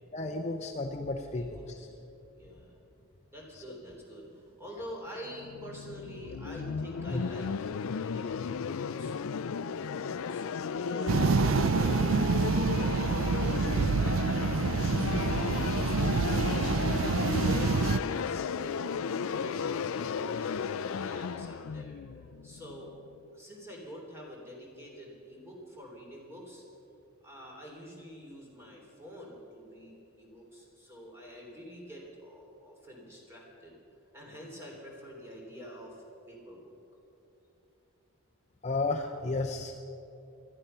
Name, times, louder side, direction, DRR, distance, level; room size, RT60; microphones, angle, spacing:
voice 1, 0.1-1.9 3.6-3.7 7.1-7.2 38.6-39.7, left 2 dB, 30° left, 3 dB, 0.7 m, -33 dB
voice 2, 1.3-2.0 2.3-2.8 3.3-16.4 16.9-22.9 23.3-26.6 27.2-33.8 34.1-36.7, equal, 10° right, -2 dB, 3.4 m, -47 dB
sound 1, 5.2-23.1, left 6 dB, 70° left, 0.4 m, -34 dB
sound 2, 11.1-18.0, right 5 dB, 65° right, 0.4 m, -27 dB
20.0 x 13.0 x 5.6 m, 2.8 s
head